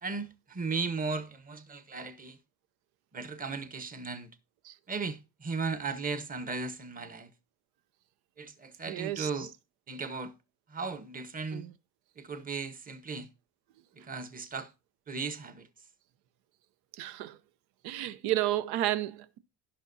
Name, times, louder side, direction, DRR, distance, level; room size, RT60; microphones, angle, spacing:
voice 1, 0.0-2.4 3.1-4.3 4.9-7.3 8.4-9.5 9.9-10.3 10.7-11.7 12.2-13.3 14.0-14.7 15.1-15.7, right 4 dB, 20° right, 1.0 m, -36 dB
voice 2, 8.9-9.3 11.5-11.7 16.9-17.4 17.8-19.4, right 14 dB, 70° right, 0.9 m, -32 dB
15.5 x 5.9 x 2.6 m
cardioid pair, 120°, 39 cm